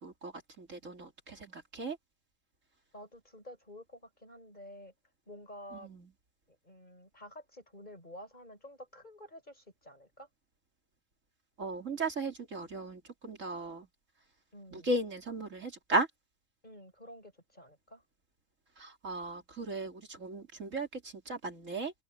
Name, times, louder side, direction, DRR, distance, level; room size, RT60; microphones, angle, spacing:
voice 1, 0.0-2.0 5.8-6.1 11.6-13.9 14.7-16.1 18.8-21.9, right 2 dB, 65° right, 3.5 m, -36 dB
voice 2, 2.9-4.9 5.3-5.9 6.6-10.3 14.5-14.9 16.6-18.0, equal, 30° left, 6.1 m, -50 dB
open air
omnidirectional pair, 1.4 m